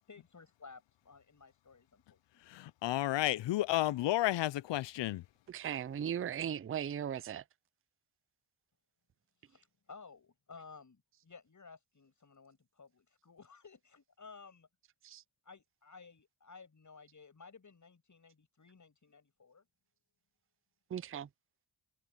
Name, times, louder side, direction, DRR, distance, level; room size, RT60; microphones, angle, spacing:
voice 1, 0.0-2.7 9.4-14.7 15.4-19.6, left 4 dB, 40° left, 7.9 m, -56 dB
voice 2, 2.5-5.2, left 15 dB, 65° left, 0.7 m, -32 dB
voice 3, 5.5-7.4 15.0-15.2 20.9-21.3, right 9 dB, 30° right, 0.6 m, -37 dB
supercardioid pair, 60°, 47 cm